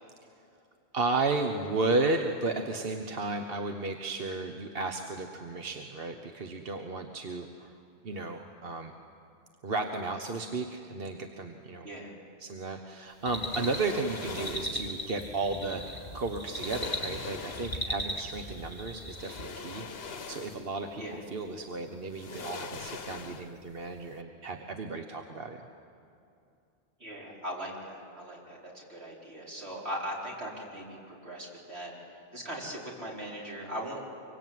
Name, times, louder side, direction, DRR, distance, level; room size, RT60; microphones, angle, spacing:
voice 1, 0.9-7.8 8.0-8.9 9.6-11.9 12.4-15.8 16.1-25.6, right 3 dB, 65° right, 5 dB, 1.3 m, -33 dB
sound 1, 13.3-19.6, equal, 30° left, 3.0 m, -38 dB
sound 2, 13.4-14.9 16.0-16.1 16.4-18.0 19.1-20.8 21.2-21.3 22.1-23.7 24.0-24.1, left 5 dB, 70° left, 1.3 m, -42 dB
voice 2, 27.0-31.9 32.3-34.0, equal, 80° right, -3 dB, 5.1 m, -39 dB
25.5 x 23.5 x 9.3 m, 2.7 s
omnidirectional pair, 1.1 m